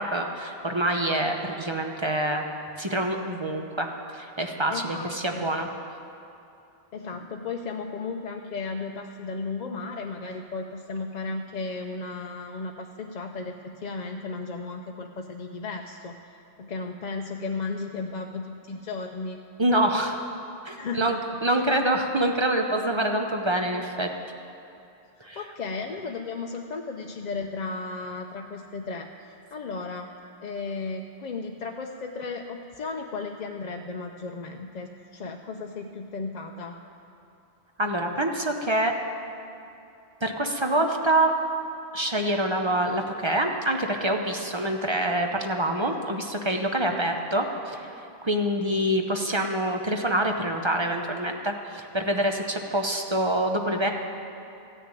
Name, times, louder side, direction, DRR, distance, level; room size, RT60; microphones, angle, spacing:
voice 1, 0.0-2.5 2.8-5.7 19.6-20.2 20.6-24.1 25.2-25.4 37.8-38.9 40.2-41.3 41.9-47.9 48.2-53.9, right 1 dB, 30° right, 3 dB, 0.8 m, -26 dB
voice 2, 4.7-5.4 6.9-19.4 20.8-21.6 25.2-30.1 30.4-36.8 46.9-47.1, left 4 dB, 50° left, 3 dB, 0.6 m, -35 dB
14.5 x 6.7 x 9.0 m, 2.7 s
omnidirectional pair, 1.0 m